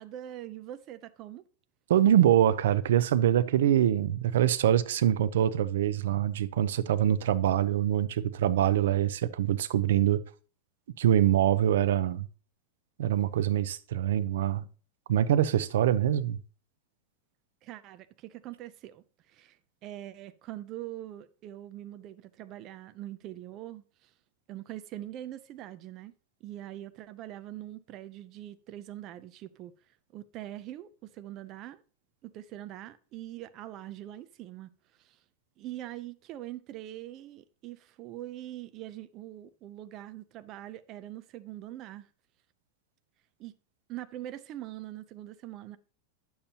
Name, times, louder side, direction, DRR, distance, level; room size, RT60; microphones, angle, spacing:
voice 1, 0.0-1.4 17.6-24.1 24.5-26.1 26.4-31.8 32.2-34.7 35.0-35.2 35.6-42.1 43.4-43.5 43.9-45.8, right 13 dB, 30° right, 0.5 m, -43 dB
voice 2, 1.9-10.2 11.0-12.3 13.0-14.7 15.1-16.4, right 11 dB, 85° right, 0.5 m, -24 dB
10.5 x 6.9 x 2.8 m
supercardioid pair, 165°, 0 cm